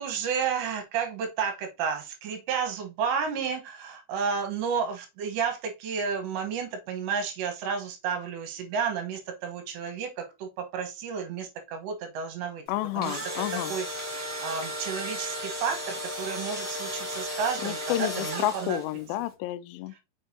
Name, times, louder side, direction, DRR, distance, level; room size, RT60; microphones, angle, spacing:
voice 1, 0.0-12.6 13.0-13.2 13.7-18.8 19.9-20.0, right 6 dB, 70° right, 3.3 m, -32 dB
voice 2, 12.7-13.7 17.6-19.9, left 15 dB, 85° left, 3.0 m, -30 dB
Engine / Drill, 12.8-19.0, equal, 50° right, 0.9 m, -34 dB
6.6 x 6.4 x 2.8 m
omnidirectional pair, 5.4 m